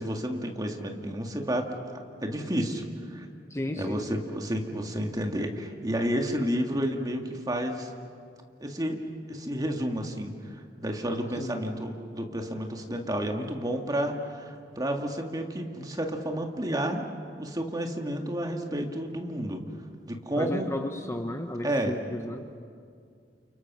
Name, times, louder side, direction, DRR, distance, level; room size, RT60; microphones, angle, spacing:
voice 1, 0.0-1.7 1.9-2.8 3.1-3.3 3.7-7.9 8.6-9.0 9.3-10.3 10.8-17.0 17.4-19.6 20.1-20.7 21.6-22.0, equal, 20° right, 3 dB, 2.1 m, -31 dB
voice 2, 3.5-4.2 11.4-11.6 20.4-22.6, left 1 dB, 15° left, 6 dB, 0.9 m, -34 dB
29.5 x 29.5 x 6.1 m, 2.2 s
head